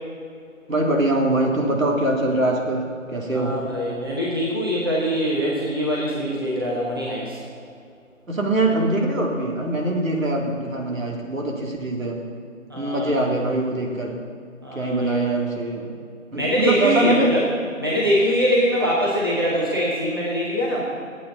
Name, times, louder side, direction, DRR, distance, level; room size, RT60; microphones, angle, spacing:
voice 1, 0.7-3.6 8.3-12.2 12.7-14.2 14.7-15.9 16.3-17.3, right 1 dB, 70° right, 0 dB, 2.7 m, -23 dB
voice 2, 3.3-7.4 12.7-13.4 14.6-15.2 16.3-17.4 17.8-20.8, equal, 15° right, -6 dB, 1.0 m, -23 dB
22.0 x 8.6 x 3.9 m, 2.3 s
figure-of-eight pair, 170°, 41 cm